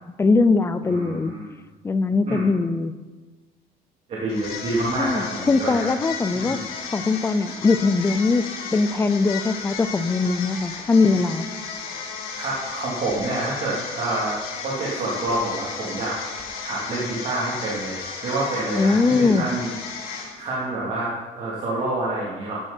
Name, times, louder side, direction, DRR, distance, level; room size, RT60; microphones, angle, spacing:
voice 1, 0.2-1.4 1.8-3.0 5.0-6.6 6.9-8.5 8.7-11.5 18.8-19.5, left 3 dB, 15° left, 12 dB, 0.6 m, -21 dB
voice 2, 0.8-1.5 2.3-2.5 4.1-5.9 6.3-6.6 12.4-16.2 16.6-19.7 20.0-22.6, right 2 dB, 45° right, -6 dB, 3.5 m, -28 dB
sound 1, 4.3-20.6, left 5 dB, 80° left, 5.5 m, -34 dB
16.5 x 11.0 x 4.5 m, 1.3 s
cardioid pair, 170°, 16 cm